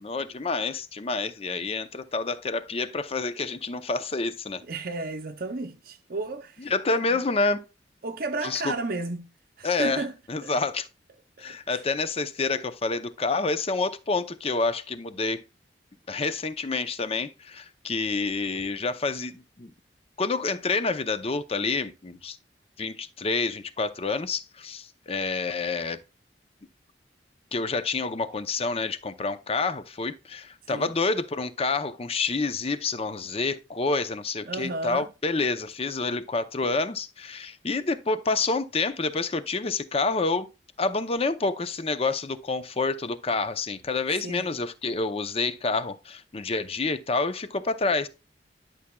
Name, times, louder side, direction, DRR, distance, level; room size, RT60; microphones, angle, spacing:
voice 1, 0.0-4.6 6.6-7.6 8.4-8.7 9.6-10.0 10.3-10.9 11.4-15.4 16.1-19.7 20.2-22.4 22.8-26.0 27.5-40.5 40.8-48.1, left 3 dB, 35° left, 0.6 m, -28 dB
voice 2, 4.6-7.2 8.0-10.1 10.4-10.5 11.4-11.8 30.7-30.9 34.4-35.1 44.2-44.5, right 3 dB, 55° right, 0.7 m, -33 dB
11.5 x 6.1 x 2.3 m
head